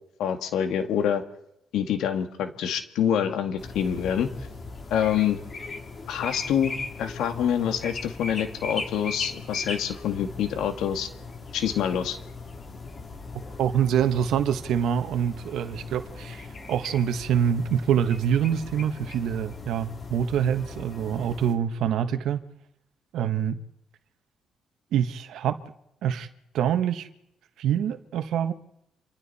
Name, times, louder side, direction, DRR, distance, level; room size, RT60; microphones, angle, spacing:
voice 1, 0.2-1.2 1.7-4.3 4.9-5.4 6.1-11.1 11.5-12.2, left 9 dB, 85° left, 7 dB, 2.0 m, -26 dB
sound 1, 3.6-21.5, left 3 dB, 40° left, 3.2 m, -39 dB
voice 2, 13.6-22.4 23.1-23.6 24.9-25.6 26.0-26.3 26.5-27.1 27.6-28.5, right 9 dB, 80° right, 9 dB, 1.4 m, -25 dB
29.0 x 26.5 x 4.3 m, 0.82 s
cardioid pair, 90°, 0 cm